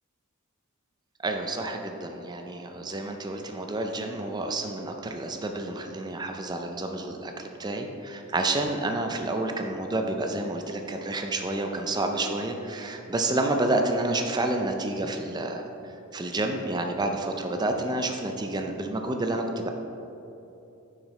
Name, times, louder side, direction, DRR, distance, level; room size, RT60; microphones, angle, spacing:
voice 1, 1.2-15.6 16.1-19.7, right 2 dB, 20° right, 4 dB, 0.4 m, -29 dB
6.4 x 6.4 x 3.1 m, 3.0 s
head